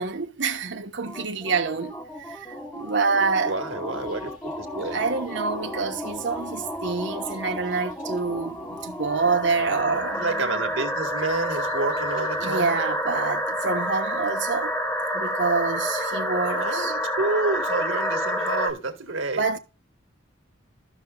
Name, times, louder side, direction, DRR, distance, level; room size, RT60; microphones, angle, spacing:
voice 1, 0.0-3.5 4.9-10.2 12.4-14.7 15.1-16.9 19.4-19.6, right 4 dB, 65° right, 1.1 m, -27 dB
sound 1, 1.1-18.7, equal, 10° left, 1.0 m, -30 dB
voice 2, 3.4-5.0 10.2-12.8 16.6-19.4, right 3 dB, 85° right, 1.8 m, -29 dB
sound 2, 3.9-12.6, left 1 dB, 45° left, 4.7 m, -52 dB
14.5 x 6.0 x 2.3 m
head